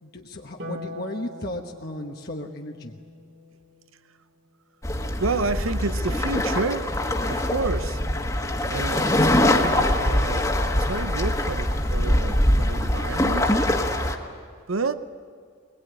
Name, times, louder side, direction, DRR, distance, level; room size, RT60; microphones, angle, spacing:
voice 1, 0.0-3.0, left 1 dB, 50° left, 1.1 m, -35 dB
Harp, 0.6-7.1 8.7-9.7, left 1 dB, 55° right, 2.6 m, -44 dB
sound 1, 4.8-14.2, left 1 dB, 15° left, 1.5 m, -23 dB
voice 2, 5.2-8.0 8.7-13.5 14.7-15.1, right 3 dB, 85° right, 0.7 m, -30 dB
22.5 x 20.5 x 9.6 m
head